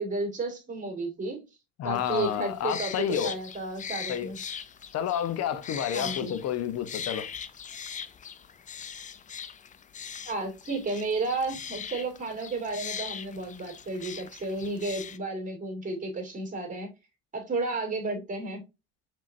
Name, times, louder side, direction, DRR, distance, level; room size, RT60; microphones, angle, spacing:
voice 1, 0.0-1.4 1.8-4.4 5.9-6.3 10.3-16.9 17.3-18.6, right 3 dB, 25° right, 2.3 m, -32 dB
voice 2, 1.8-3.3 4.1-4.3 4.9-7.3, left 9 dB, 50° left, 0.9 m, -30 dB
sound 1, 1.9-15.2, left 7 dB, 25° left, 0.5 m, -40 dB
4.9 x 3.8 x 2.6 m
supercardioid pair, 90°, 32 cm